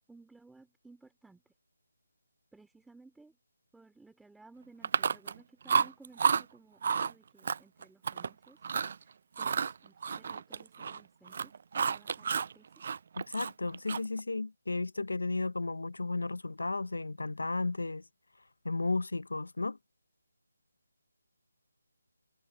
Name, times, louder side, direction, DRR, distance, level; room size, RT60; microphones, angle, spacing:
voice 1, 0.1-1.5 2.5-3.4 3.7-8.6 9.0-12.8, right 3 dB, ahead, 2.5 m, -58 dB
Chewing mastication, 4.8-5.4 5.7-6.4 6.8-7.1 7.5-8.3 8.6-9.0 9.4-11.0 11.3-12.5 12.8-14.2, right 6 dB, 35° right, 0.3 m, -30 dB
voice 2, 13.2-18.0 18.6-19.8, left 3 dB, 90° left, 0.6 m, -34 dB
figure-of-eight pair, 170°, 0 cm